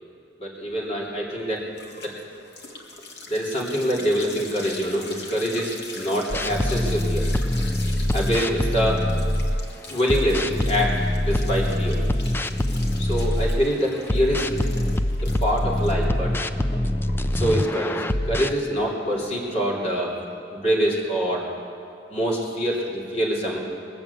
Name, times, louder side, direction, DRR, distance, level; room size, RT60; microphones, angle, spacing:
voice 1, 0.4-1.6 2.0-2.1 3.3-7.3 8.1-9.0 9.9-10.9 11.2-12.0 13.0-14.5 15.2-16.3 17.3-20.1 20.5-21.4 22.1-23.6, equal, 35° left, -3 dB, 2.9 m, -25 dB
sound 1, 0.8-19.8, left 3 dB, 65° left, 1.7 m, -42 dB
sound 2, 6.3-9.6 10.1-13.6 14.1-18.5, left 1 dB, 15° left, 0.4 m, -24 dB
21.0 x 7.1 x 8.3 m, 2.5 s
head